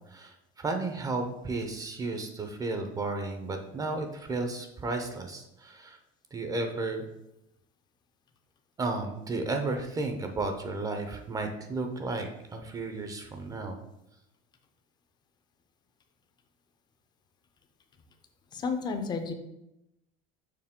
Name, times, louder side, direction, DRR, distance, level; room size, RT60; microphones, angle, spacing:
voice 1, 0.0-6.0 6.3-7.1 8.8-13.8, right 3 dB, 20° right, 5 dB, 0.6 m, -33 dB
voice 2, 18.5-19.3, left 4 dB, 20° left, 6 dB, 0.6 m, -31 dB
5.7 x 4.7 x 3.6 m, 0.89 s
cardioid pair, 140°, 19 cm